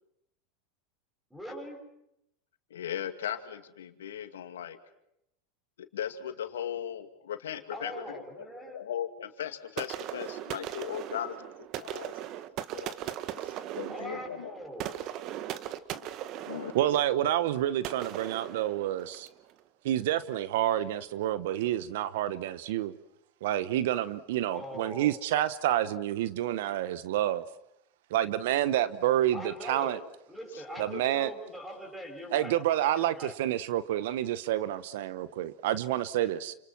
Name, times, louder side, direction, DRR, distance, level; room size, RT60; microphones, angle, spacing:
voice 1, 1.3-1.8 7.7-8.8 13.9-14.9 24.5-25.3 29.3-30.0 30.3-32.6 33.0-33.4, equal, 5° right, 4 dB, 7.0 m, -42 dB
voice 2, 2.7-4.8 5.9-8.5 8.7-12.1 12.7-12.9 13.4-14.5 16.5-16.7 30.5-30.6 30.9-31.2, left 10 dB, 80° left, 8 dB, 2.3 m, -38 dB
sound 1, 9.8-19.4, right 12 dB, 50° right, 1.6 m, -39 dB
voice 3, 16.7-19.3 19.8-22.9 23.4-27.4 28.1-30.0 30.8-31.3 32.3-36.5, right 12 dB, 70° right, 15 dB, 1.0 m, -28 dB
29.0 x 27.5 x 6.1 m, 0.80 s
hypercardioid pair, 95°, 0 cm